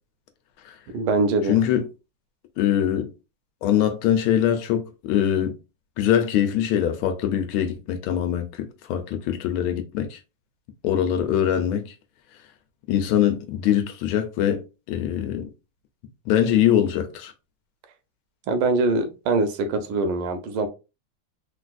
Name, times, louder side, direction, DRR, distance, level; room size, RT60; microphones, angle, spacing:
voice 1, 0.9-1.6 18.5-20.7, right 3 dB, 80° right, 1.5 m, -23 dB
voice 2, 1.5-1.8 2.6-3.1 3.6-5.5 6.0-10.2 10.8-11.9 12.9-15.5 16.3-17.3, left 10 dB, 90° left, 1.5 m, -23 dB
3.8 x 2.5 x 2.3 m
omnidirectional pair, 2.3 m